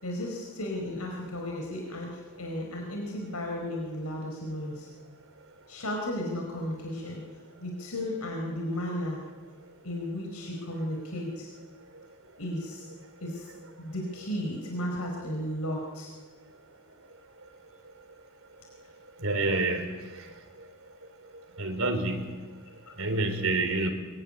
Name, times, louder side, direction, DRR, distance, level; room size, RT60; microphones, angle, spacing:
voice 1, 0.0-4.9 5.7-7.2 7.6-9.2 9.8-11.5 12.4-12.9 13.2-13.5 13.8-16.1 22.9-23.0, left 1 dB, 85° left, 1 dB, 4.5 m, -34 dB
voice 2, 19.2-19.8 21.6-22.2 23.0-23.9, right 2 dB, 65° right, 6 dB, 4.3 m, -27 dB
23.0 x 23.0 x 9.8 m, 1.4 s
head